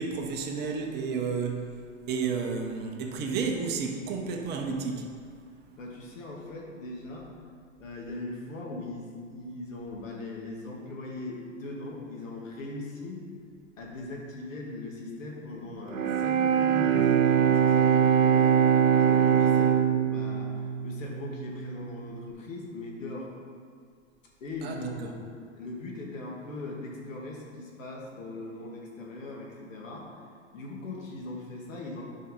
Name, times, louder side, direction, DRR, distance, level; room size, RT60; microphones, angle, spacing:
voice 1, 0.0-1.7 2.1-5.1 24.6-25.1, right 5 dB, 25° right, 2 dB, 1.0 m, -31 dB
voice 2, 5.8-7.3 7.8-13.2 13.8-18.6 19.0-23.3 24.4-25.3 25.6-30.1 30.5-32.0, left 2 dB, 80° left, -2 dB, 2.4 m, -39 dB
Bowed string instrument, 15.9-21.9, right 8 dB, 90° right, 0.9 m, -23 dB
9.5 x 5.6 x 5.2 m, 2.1 s
hypercardioid pair, 135°, 39 cm